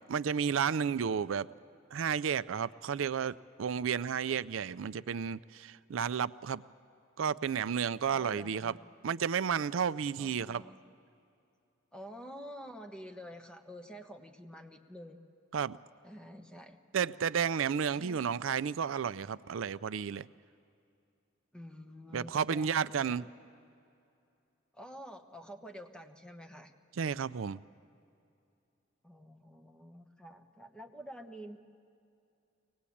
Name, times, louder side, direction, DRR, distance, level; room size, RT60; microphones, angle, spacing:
voice 1, 0.1-1.5 1.9-6.6 7.2-8.7 9.0-10.6 15.5-15.8 16.9-20.3 22.1-23.2 27.0-27.6, right 7 dB, 75° right, 16 dB, 0.4 m, -32 dB
voice 2, 8.1-8.8 10.2-10.8 11.9-15.2 16.0-16.8 17.9-18.2 21.5-23.3 24.7-26.7 29.0-31.6, equal, 5° left, 4 dB, 1.2 m, -48 dB
23.5 x 19.5 x 8.5 m, 2.6 s
head